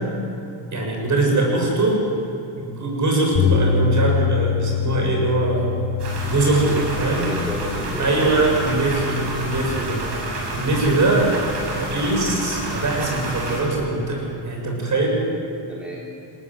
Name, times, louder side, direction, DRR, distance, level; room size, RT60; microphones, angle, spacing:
voice 1, 0.7-2.0 2.6-5.7 6.2-7.3 8.0-10.1 10.5-11.3 11.6-15.2, right 2 dB, 40° right, 0 dB, 7.5 m, -22 dB
Bass guitar, 3.3-9.6, left 6 dB, 50° left, 3.6 m, -25 dB
sound 1, 6.0-13.6, right 2 dB, 60° right, 7.5 m, -29 dB
voice 2, 6.4-6.9 7.2-8.5 15.7-16.0, equal, ahead, -5 dB, 3.6 m, -31 dB
22.0 x 18.0 x 8.3 m, 2.8 s
cardioid pair, 120°, 46 cm